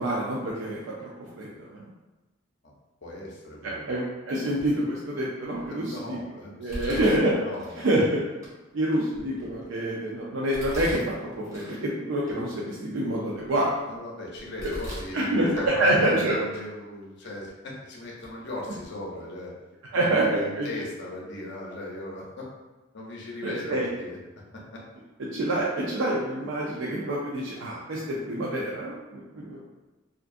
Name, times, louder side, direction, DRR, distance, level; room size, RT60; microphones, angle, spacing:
voice 1, 0.0-1.9 3.6-6.2 6.6-7.3 7.8-8.2 8.7-13.7 15.1-15.5 15.8-16.4 19.9-20.7 23.4-23.9 25.3-29.6, right 1 dB, 65° right, -5 dB, 0.4 m, -27 dB
voice 2, 3.0-3.9 5.7-8.1 13.9-19.5 19.9-22.5 22.9-24.2 24.5-24.8, left 1 dB, 55° left, -3 dB, 0.6 m, -38 dB
Domestic sounds home sounds, 4.6-5.0 5.5-6.0 6.7-7.9 8.4-8.5 9.1-9.9 10.5-11.8 12.2-12.3 12.9-13.9 14.4-15.1 15.5-16.2 16.5-16.6 17.5-17.6 18.2-18.3 18.7-18.9, equal, 15° right, 0.7 m, -40 dB
2.5 x 2.3 x 2.5 m, 1.1 s
head